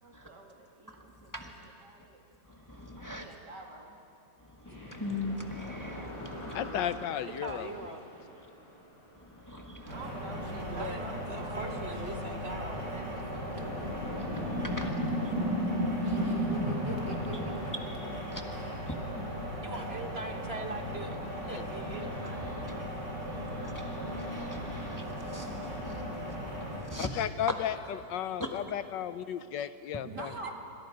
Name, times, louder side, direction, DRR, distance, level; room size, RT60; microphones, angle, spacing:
voice 1, 0.0-1.5 1.8-2.2 2.9-4.0 9.7-13.9 16.0-17.5 30.0-30.5, right 1 dB, 70° right, 1 dB, 3.2 m, -46 dB
voice 2, 1.3-1.7 2.5-3.2 4.4-7.0 9.1-10.0 14.2-14.9 15.2-15.3 15.7-16.3 18.0-18.4 18.9-19.4 20.8-21.2 21.7-26.4 26.7-27.2 28.4-28.5, left 1 dB, 10° left, 2 dB, 1.4 m, -42 dB
sound 1, 4.7-8.5 9.7-9.8 11.6-11.7 12.0-17.7, equal, 25° right, 6.5 m, -35 dB
voice 3, 6.5-7.7 21.5-21.7 27.0-27.7 28.1-30.3, left 10 dB, 85° left, 13 dB, 1.4 m, -34 dB
voice 4, 7.4-8.0 10.7-12.8 19.6-22.5 30.4-30.5, right 2 dB, 40° right, 5 dB, 1.3 m, -41 dB
sound 2, 9.9-26.8, equal, 85° right, 7.1 m, -38 dB
26.0 x 26.0 x 5.2 m, 2.6 s
omnidirectional pair, 1.9 m